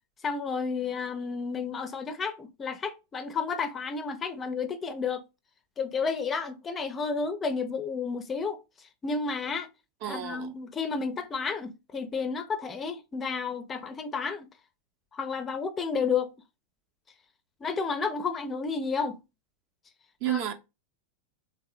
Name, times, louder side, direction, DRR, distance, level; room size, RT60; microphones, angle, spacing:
voice 1, 0.2-5.2 5.8-9.7 10.0-14.5 15.1-16.3 17.6-19.2 20.3-20.4, left 5 dB, 20° left, 0.4 m, -31 dB
voice 2, 10.0-10.5 20.2-20.5, right 11 dB, 45° right, 0.6 m, -31 dB
3.4 x 2.7 x 2.4 m
figure-of-eight pair, 90°, 0 cm